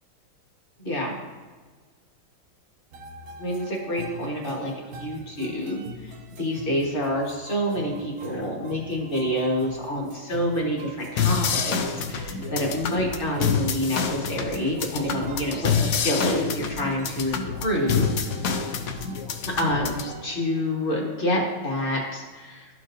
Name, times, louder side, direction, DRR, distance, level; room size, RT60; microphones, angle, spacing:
voice 1, 0.8-1.1 3.4-4.7 5.0-18.1 19.5-22.7, equal, 30° left, -2 dB, 1.4 m, -27 dB
sound 1, 2.9-21.0, right 2 dB, 70° right, 0.8 m, -44 dB
sound 2, 11.2-20.1, left 6 dB, 85° left, 0.7 m, -27 dB
12.0 x 4.5 x 2.6 m, 1.4 s
omnidirectional pair, 2.2 m